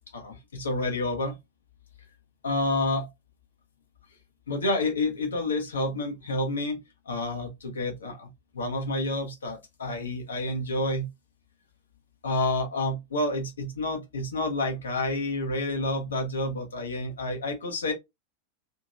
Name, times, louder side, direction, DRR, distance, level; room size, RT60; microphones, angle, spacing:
voice 1, 0.1-1.4 2.4-3.1 4.5-6.8 7.1-8.3 8.5-11.1 12.2-17.9, left 2 dB, 70° left, 0.9 m, -29 dB
2.8 x 2.8 x 2.4 m
figure-of-eight pair, 90°, 0 cm